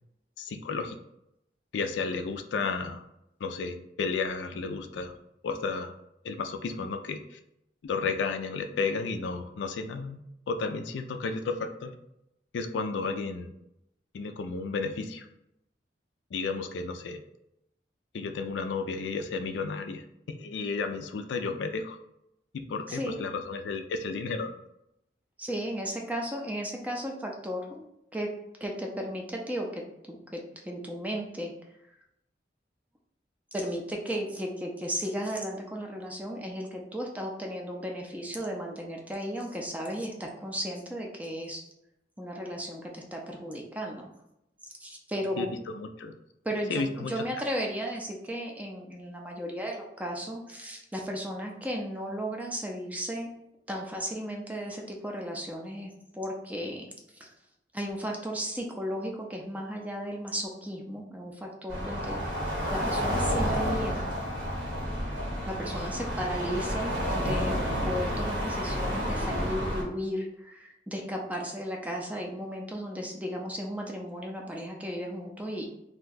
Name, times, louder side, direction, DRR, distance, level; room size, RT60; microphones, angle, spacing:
voice 1, 0.4-1.0 1.7-3.0 3.4-5.1 5.4-5.9 6.2-7.4 7.8-10.2 10.5-11.9 12.5-13.5 14.1-15.3 16.3-17.2 18.1-22.0 22.5-24.5 45.4-46.1 46.7-47.2, left 4 dB, 80° left, 6 dB, 0.3 m, -32 dB
voice 2, 22.9-23.2 25.4-28.3 28.6-31.5 33.5-41.6 42.2-44.1 44.8-45.5 46.4-53.3 53.7-56.9 57.2-57.3 57.7-62.4 62.7-64.1 65.5-67.6 67.8-75.7, equal, 10° right, 0 dB, 0.4 m, -35 dB
sound 1, 61.7-69.8, equal, 80° right, 1.2 m, -30 dB
2.6 x 2.2 x 3.9 m, 0.83 s
head